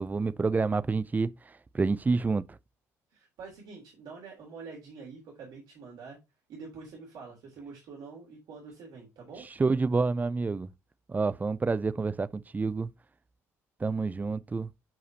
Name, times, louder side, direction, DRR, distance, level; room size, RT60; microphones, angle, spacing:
voice 1, 0.0-2.6 9.6-10.7 11.1-12.9 13.8-14.7, right 4 dB, 20° right, 0.5 m, -28 dB
voice 2, 3.1-6.2 6.5-9.5, right 4 dB, 60° right, 3.4 m, -46 dB
11.0 x 5.0 x 2.9 m
hypercardioid pair, 55°, 8 cm